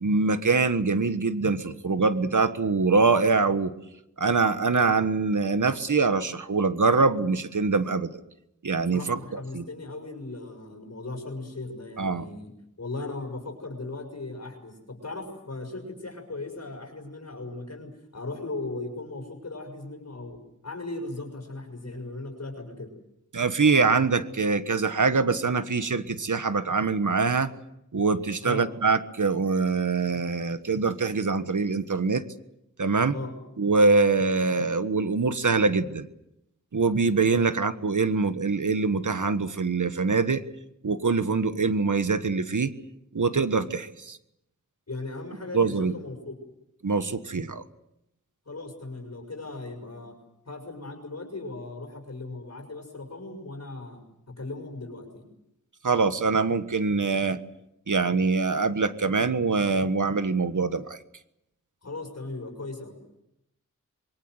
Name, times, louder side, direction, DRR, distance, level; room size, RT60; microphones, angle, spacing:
voice 1, 0.0-3.7 4.2-8.1 8.6-9.6 12.0-12.3 23.3-27.5 27.9-32.2 32.8-33.1 33.6-36.1 36.7-40.4 40.8-42.7 43.1-44.2 45.5-45.9 46.8-47.6 55.8-57.4 57.9-61.0, right 4 dB, 70° right, 11 dB, 1.4 m, -24 dB
voice 2, 8.9-12.5 12.8-22.9 28.4-28.7 33.1-33.3 37.5-37.6 44.9-46.4 48.4-50.2 50.4-54.0 54.3-55.3 61.8-63.0, left 2 dB, 55° left, 3 dB, 6.6 m, -37 dB
26.0 x 23.5 x 8.0 m, 0.83 s
wide cardioid pair, 65°, 31 cm